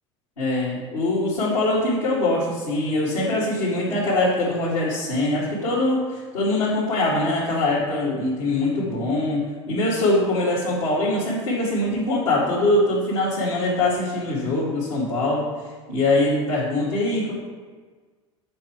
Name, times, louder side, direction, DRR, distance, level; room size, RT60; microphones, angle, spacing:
voice 1, 0.4-15.5 15.9-17.3, left 2 dB, 75° left, -9 dB, 1.9 m, -23 dB
7.6 x 4.7 x 4.5 m, 1.4 s
figure-of-eight pair, 70°, 16 cm